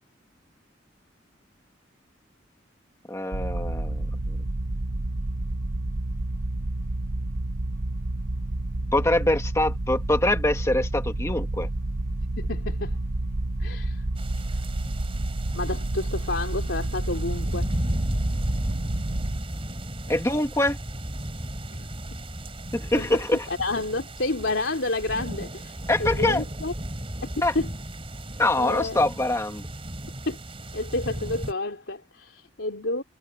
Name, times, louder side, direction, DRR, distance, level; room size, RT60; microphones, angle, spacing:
voice 1, 3.1-4.1 8.9-11.7 20.1-20.8 22.7-23.5 25.9-26.4 27.4-27.5 28.4-29.7, left 1 dB, 15° left, 1.8 m, -24 dB
sound 1, 3.3-19.4, right 2 dB, 70° right, 1.0 m, -29 dB
voice 2, 12.4-13.0 13.6-14.0 15.5-17.7 21.7-21.9 22.9-23.2 23.5-26.7 27.4-27.7 28.6-29.0 30.3-30.4 30.7-33.0, left 2 dB, 80° left, 3.0 m, -30 dB
sound 2, 14.2-31.5, right 1 dB, 30° right, 3.7 m, -34 dB
head